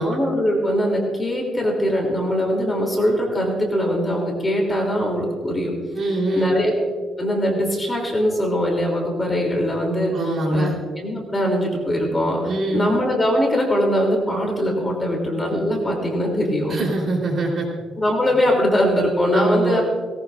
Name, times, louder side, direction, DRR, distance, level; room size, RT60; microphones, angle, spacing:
voice 1, 0.0-5.7 6.3-6.7 7.2-10.2 10.5-10.7 11.0-16.8 18.0-19.8, equal, 15° left, 0 dB, 3.0 m, -21 dB
voice 2, 5.9-6.6 10.1-10.7 12.5-12.9 16.7-17.7 19.3-19.8, right 2 dB, 45° right, -1 dB, 3.7 m, -23 dB
19.0 x 18.0 x 2.5 m, 1.5 s
cardioid pair, 145°, 0 cm